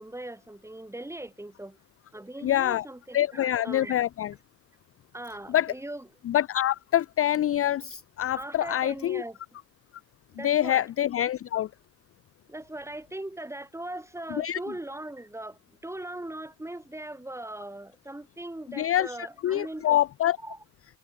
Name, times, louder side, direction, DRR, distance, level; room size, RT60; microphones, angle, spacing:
voice 1, 0.0-1.8 2.1-4.0 5.1-6.1 8.3-9.4 10.3-10.8 12.5-20.0 20.4-20.6, right 1 dB, 5° right, 2.7 m, -39 dB
voice 2, 2.4-2.9 3.1-4.3 5.5-5.7 6.2-9.2 10.4-11.7 14.3-14.6 18.8-20.4, left 12 dB, 30° left, 0.6 m, -26 dB
supercardioid pair, 90°, 46 cm